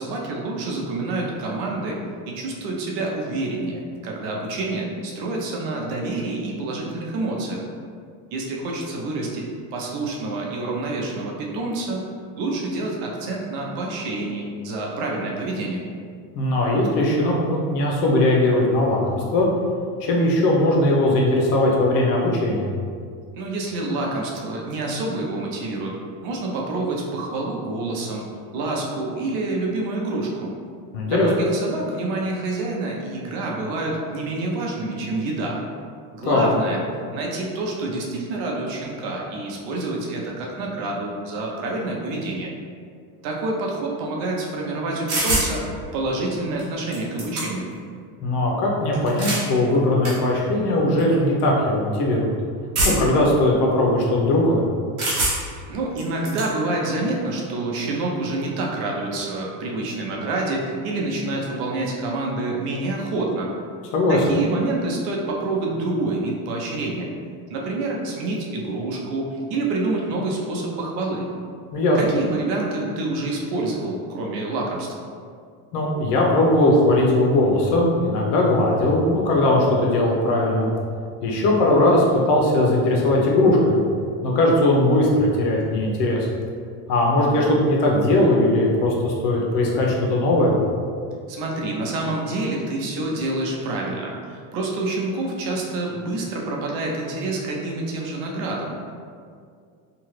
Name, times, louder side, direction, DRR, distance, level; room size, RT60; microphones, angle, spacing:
voice 1, 0.0-2.0 2.3-7.6 8.3-12.1 12.4-15.9 23.3-26.0 26.2-28.3 28.5-30.5 31.1-35.6 36.1-36.8 37.1-42.5 43.2-47.7 55.7-63.5 64.1-67.1 67.5-71.3 72.0-74.9 91.3-98.7, right 2 dB, 55° right, -1 dB, 0.6 m, -27 dB
voice 2, 16.3-19.5 20.0-22.7 30.9-31.3 36.2-36.5 48.2-52.3 52.8-54.6 63.9-64.4 71.7-72.2 75.7-80.7 81.2-83.8 84.2-86.3 86.9-90.5, left 1 dB, 85° left, -2 dB, 0.8 m, -19 dB
sound 1, 45.1-45.5 46.6-46.7 46.9-47.7 48.9-49.5 50.0-50.1 51.0-51.1 52.7-53.2 55.0-55.6 56.0-56.5, right 2 dB, 40° right, 1.1 m, -24 dB
2.9 x 2.3 x 3.1 m, 2.2 s
cardioid pair, 160°, 46 cm